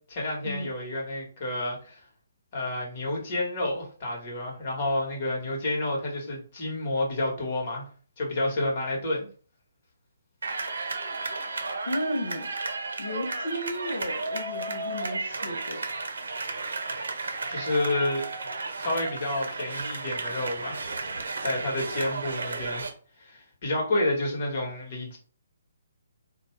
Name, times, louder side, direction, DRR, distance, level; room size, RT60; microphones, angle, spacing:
voice 1, 0.1-2.0 2.5-7.9 8.2-9.3 17.5-18.2 18.8-20.9 21.4-22.8 23.2-25.2, left 1 dB, 45° left, -1 dB, 1.2 m, -29 dB
sound 1, 10.4-22.9, right 3 dB, 70° right, 0.6 m, -33 dB
voice 2, 11.9-12.5 13.0-15.9, left 1 dB, 70° left, 0 dB, 0.6 m, -34 dB
2.5 x 2.2 x 3.2 m, 0.40 s
figure-of-eight pair, 140°, 0 cm